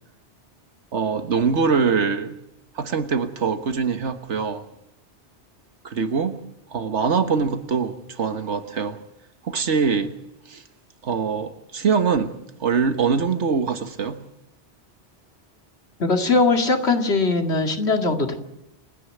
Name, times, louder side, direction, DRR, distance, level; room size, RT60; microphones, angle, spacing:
voice 1, 0.9-2.4 2.7-4.7 5.8-6.4 6.7-9.0 9.4-10.2 10.5-10.6 11.0-14.2, right 5 dB, 85° right, 1.6 m, -23 dB
voice 2, 16.0-18.3, left 3 dB, 70° left, 2.5 m, -20 dB
28.5 x 10.0 x 9.3 m
omnidirectional pair, 1.2 m